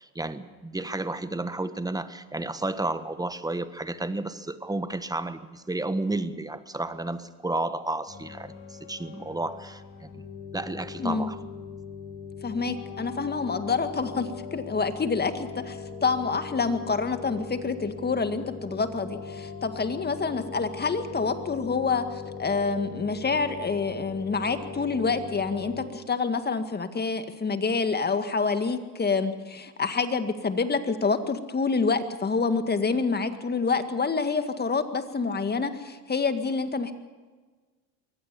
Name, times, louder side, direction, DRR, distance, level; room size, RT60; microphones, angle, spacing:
voice 1, 0.0-10.2 10.5-11.4, right 2 dB, 10° right, 12 dB, 1.3 m, -32 dB
sound 1, 8.1-25.9, left 5 dB, 45° left, 7.4 m, -40 dB
voice 2, 11.0-11.3 12.4-36.9, left 4 dB, 25° left, 9 dB, 1.9 m, -27 dB
23.5 x 17.0 x 7.0 m, 1.4 s
supercardioid pair, 85°, 42 cm